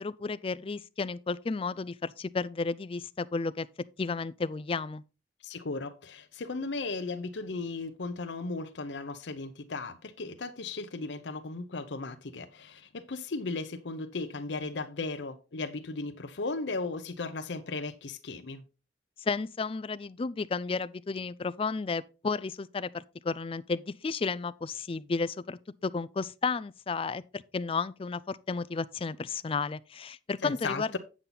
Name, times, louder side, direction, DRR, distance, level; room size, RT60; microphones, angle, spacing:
voice 1, 0.0-3.7 4.0-5.0 19.2-31.0, left 4 dB, 30° left, 0.4 m, -33 dB
voice 2, 5.4-18.6 30.4-31.0, left 3 dB, 85° left, 0.7 m, -36 dB
8.3 x 7.4 x 3.9 m
head